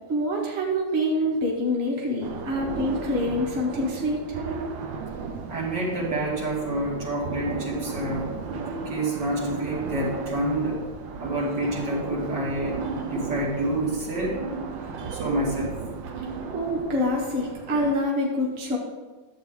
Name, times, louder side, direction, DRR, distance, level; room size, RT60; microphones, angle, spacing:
voice 1, 0.1-4.4 16.2-18.8, left 1 dB, 35° right, -2 dB, 1.7 m, -26 dB
sound 1, 2.2-17.9, right 4 dB, 85° right, 1.6 m, -35 dB
voice 2, 5.5-8.3 8.6-10.8 11.2-12.8 13.1-14.4 15.1-15.8, right 1 dB, 70° right, -5 dB, 3.0 m, -28 dB
11.5 x 7.8 x 3.7 m, 1.3 s
omnidirectional pair, 2.0 m